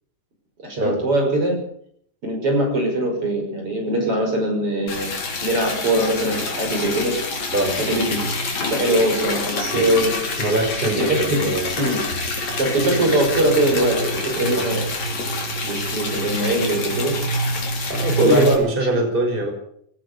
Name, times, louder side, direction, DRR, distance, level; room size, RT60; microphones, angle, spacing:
voice 1, 0.6-1.5 2.2-5.1 5.4-7.1 7.8-8.3 8.6-10.2 10.8-12.1 12.6-14.8 15.6-17.2 18.2-18.5, right 1 dB, 45° right, 2 dB, 6.8 m, -21 dB
Liquid, 4.9-18.5, left 2 dB, 60° left, 5.2 m, -26 dB
voice 2, 10.4-11.8 14.4-14.7 17.9-19.5, right 2 dB, 15° right, 3 dB, 5.4 m, -22 dB
21.5 x 17.5 x 6.9 m, 0.66 s
omnidirectional pair, 3.6 m